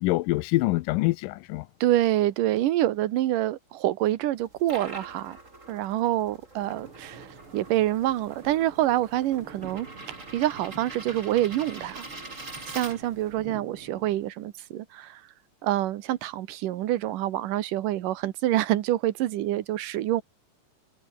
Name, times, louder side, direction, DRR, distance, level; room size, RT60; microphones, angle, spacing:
voice 1, 0.0-1.7, left 20 dB, 80° left, 2.1 m, -25 dB
voice 2, 1.8-5.4 5.7-9.9 10.3-12.0 12.7-15.2 15.6-20.2, right 14 dB, 75° right, 2.7 m, -26 dB
sound 1, 4.4-13.4, right 2 dB, 20° right, 4.9 m, -44 dB
sound 2, 6.6-14.3, right 4 dB, 40° right, 4.7 m, -47 dB
omnidirectional pair, 3.9 m